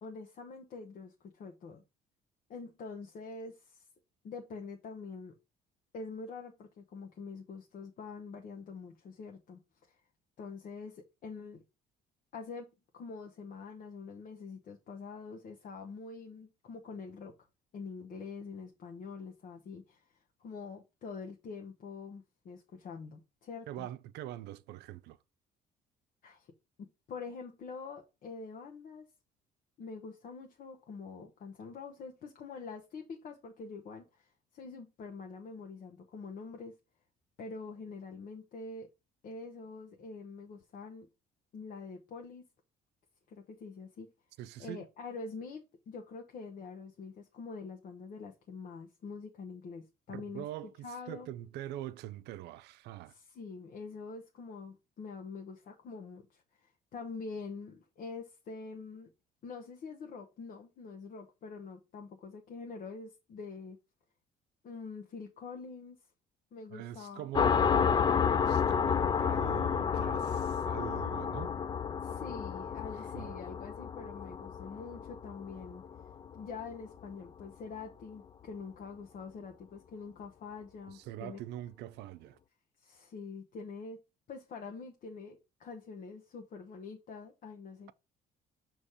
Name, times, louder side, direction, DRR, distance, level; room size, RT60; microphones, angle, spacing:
voice 1, 0.0-1.8 2.5-3.9 4.2-5.3 5.9-10.0 10.4-11.6 12.3-17.3 17.7-23.9 26.2-26.5 26.8-29.1 29.8-36.8 37.4-38.9 39.2-41.1 41.5-42.5 43.3-44.1 44.6-50.4 50.8-51.3 53.1-59.1 59.4-63.8 64.6-66.0 66.5-67.3 72.0-75.8 76.3-81.4 82.8-84.0 84.3-87.9, left 4 dB, 55° left, 1.1 m, -45 dB
voice 2, 23.7-25.2 44.4-44.9 50.1-50.7 51.1-53.1 66.7-71.6 73.1-73.4 80.9-82.4, right 13 dB, 85° right, 0.5 m, -43 dB
sound 1, 67.3-76.6, left 7 dB, 25° left, 0.3 m, -31 dB
6.6 x 3.0 x 5.5 m
cardioid pair, 110°, 17 cm